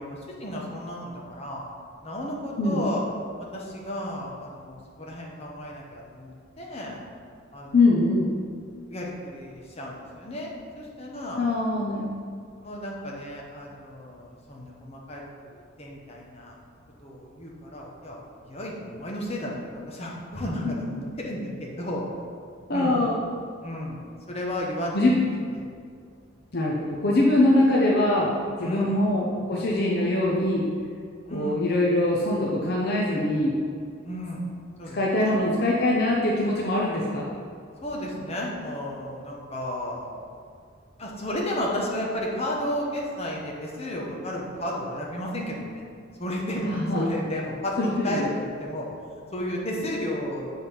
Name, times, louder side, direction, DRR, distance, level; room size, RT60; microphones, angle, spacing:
voice 1, 0.0-1.6 2.0-3.0 3.4-7.0 7.5-7.8 8.9-11.4 12.6-16.6 17.0-18.2 18.4-22.1 22.7-23.0 23.6-25.2 25.5-25.6 28.6-29.0 31.3-31.7 34.0-34.4 34.8-35.4 37.8-40.2 41.0-45.8 46.2-47.8 48.0-48.9 49.3-50.5, left 1 dB, 30° left, -2 dB, 1.0 m, -33 dB
voice 2, 7.7-8.3 11.4-12.1 20.6-20.7 22.7-23.2 24.9-25.2 26.5-28.3 28.6-30.6 31.3-33.6 34.9-37.3 46.6-47.1 47.8-48.3, left 1 dB, 50° left, -4 dB, 0.7 m, -23 dB
7.0 x 4.1 x 5.5 m, 2.2 s
head